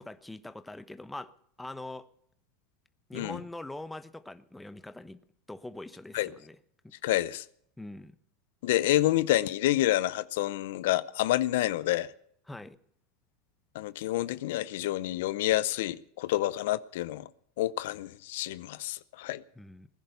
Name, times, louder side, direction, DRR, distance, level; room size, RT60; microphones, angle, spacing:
voice 1, 0.0-2.1 3.1-5.2 5.5-6.6 6.8-6.9 7.8-8.1 12.5-12.8 19.6-19.9, left 2 dB, 5° left, 1.0 m, -43 dB
voice 2, 7.0-7.4 8.6-12.1 13.7-17.3 17.6-19.4, left 15 dB, 75° left, 0.6 m, -28 dB
20.0 x 10.5 x 6.8 m
supercardioid pair, 110°, 0 cm